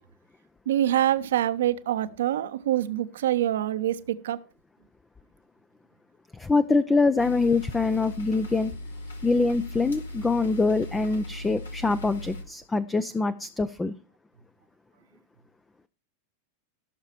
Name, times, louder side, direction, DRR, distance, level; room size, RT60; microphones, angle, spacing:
voice 1, 0.7-4.4, right 12 dB, 60° right, 0.9 m, -25 dB
voice 2, 6.3-8.7 9.2-13.9, left 3 dB, 10° left, 0.6 m, -24 dB
sound 1, 7.2-12.4, left 1 dB, 70° left, 2.4 m, -38 dB
17.0 x 6.7 x 4.4 m
figure-of-eight pair, 90°, 0 cm